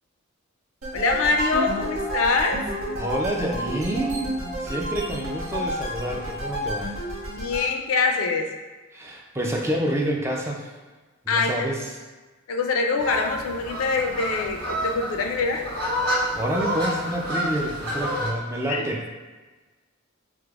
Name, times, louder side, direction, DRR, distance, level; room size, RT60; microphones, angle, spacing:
sound 1, 0.8-7.7, equal, 90° right, 0.7 m, -30 dB
voice 1, 0.9-2.6 7.3-8.5 11.3-11.7 12.5-15.7 18.7-18.8, left 4 dB, 85° left, 3 dB, 0.4 m, -24 dB
voice 2, 2.9-4.3 4.6-6.9 8.9-10.7 11.3-11.9 16.3-19.2, right 1 dB, 15° right, -1 dB, 0.4 m, -28 dB
sound 2, 13.0-18.3, equal, 50° right, 1.4 m, -29 dB
4.7 x 2.0 x 2.3 m, 1.3 s
head